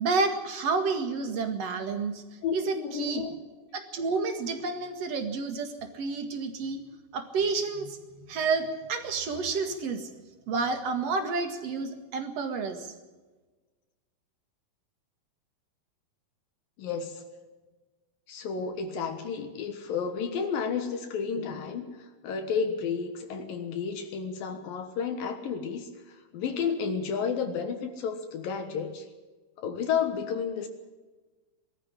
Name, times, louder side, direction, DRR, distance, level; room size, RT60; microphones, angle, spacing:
voice 1, 0.0-2.2 2.5-3.2 3.7-6.8 7.1-10.1 10.5-12.9, right 4 dB, 50° right, 7 dB, 2.7 m, -30 dB
voice 2, 2.4-3.4 16.8-17.2 18.3-29.1 29.6-30.7, left 6 dB, 75° left, 6 dB, 3.1 m, -32 dB
20.5 x 13.5 x 9.8 m, 1.3 s
omnidirectional pair, 4.2 m